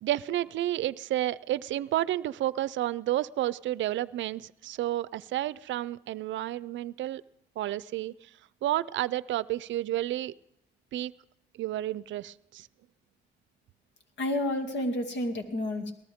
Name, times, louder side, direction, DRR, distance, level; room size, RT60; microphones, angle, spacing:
voice 1, 0.0-7.2 7.6-8.1 8.6-10.3 10.9-11.1 11.6-12.7, right 14 dB, 75° right, 19 dB, 0.5 m, -31 dB
voice 2, 14.2-15.9, left 1 dB, 65° left, 5 dB, 2.5 m, -30 dB
21.5 x 18.5 x 3.6 m, 0.82 s
cardioid pair, 90°, 20 cm